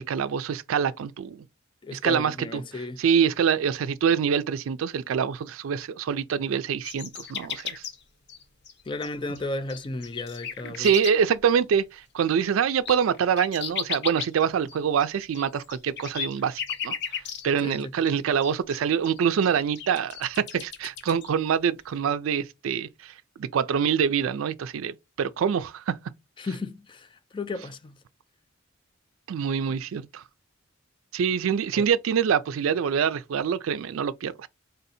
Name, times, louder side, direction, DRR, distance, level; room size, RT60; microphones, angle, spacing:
voice 1, 0.0-1.4 1.9-2.6 3.0-7.8 10.6-26.0 29.3-30.2 31.1-34.5, right 7 dB, 90° right, 0.4 m, -25 dB
voice 2, 1.8-3.0 8.9-10.9 17.6-17.9 26.4-28.0 31.8-31.9, left 2 dB, 25° left, 0.4 m, -34 dB
sound 1, 6.8-8.0 8.3-9.1 9.4-11.4 12.6-17.8 18.1-18.2 18.4-18.8 19.0-21.3, left 7 dB, 60° left, 0.7 m, -35 dB
3.8 x 2.7 x 4.1 m
head